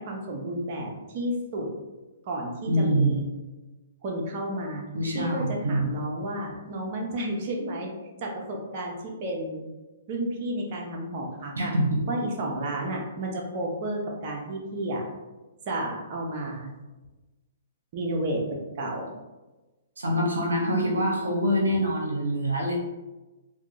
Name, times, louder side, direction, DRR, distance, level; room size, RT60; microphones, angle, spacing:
voice 1, 0.0-1.7 2.3-3.3 4.0-4.8 5.1-7.9 8.2-9.6 10.1-11.7 12.1-15.0 15.7-16.7 17.9-18.4 18.8-19.1, right 1 dB, 45° right, -1 dB, 0.8 m, -31 dB
voice 2, 2.7-3.3 4.9-5.8 11.6-12.0 20.0-22.7, equal, 85° right, 0 dB, 0.7 m, -25 dB
3.7 x 2.3 x 3.0 m, 1.1 s
hypercardioid pair, 125°, 0 cm